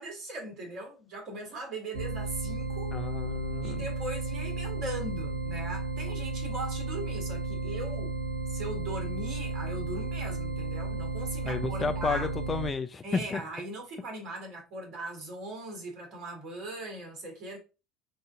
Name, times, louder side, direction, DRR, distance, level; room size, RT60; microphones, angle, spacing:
voice 1, 0.0-2.9 3.6-8.1 8.5-12.3 13.0-17.6, right 1 dB, 45° right, 1.6 m, -39 dB
sound 1, 1.9-12.7, right 3 dB, 75° right, 0.8 m, -33 dB
voice 2, 2.9-3.8 11.5-13.4, left 4 dB, 25° left, 0.4 m, -32 dB
5.3 x 2.6 x 2.6 m
figure-of-eight pair, 65°, 0 cm